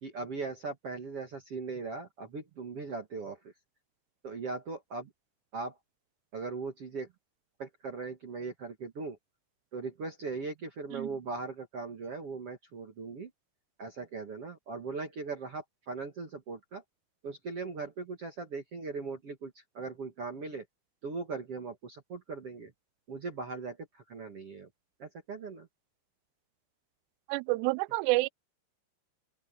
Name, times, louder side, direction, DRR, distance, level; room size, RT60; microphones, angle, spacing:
voice 1, 0.0-3.4 4.2-5.1 5.5-5.8 6.3-7.1 7.6-9.2 9.7-13.3 13.8-16.8 17.2-20.6 21.0-22.7 23.1-24.7 25.0-25.7, right 4 dB, 50° right, 1.8 m, -39 dB
voice 2, 27.3-28.3, right 23 dB, 85° right, 2.4 m, -28 dB
open air
omnidirectional pair, 5.4 m